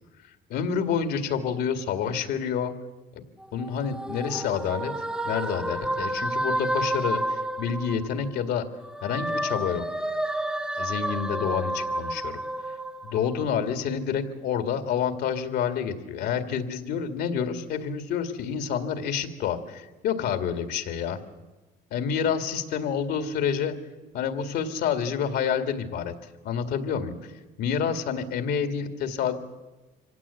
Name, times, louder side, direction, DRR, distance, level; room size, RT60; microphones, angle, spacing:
voice 1, 0.5-2.7 3.1-3.2 3.5-4.9 5.2-8.7 9.0-9.9 10.8-12.4 13.0-21.2 21.9-23.7 24.1-26.1 26.4-27.2 27.6-29.3, left 7 dB, 80° left, 8 dB, 2.2 m, -28 dB
sound 1, 3.4-8.4 8.8-13.5, right 1 dB, 5° right, 0.8 m, -30 dB
25.0 x 17.0 x 8.5 m, 1.2 s
cardioid pair, 110°, 17 cm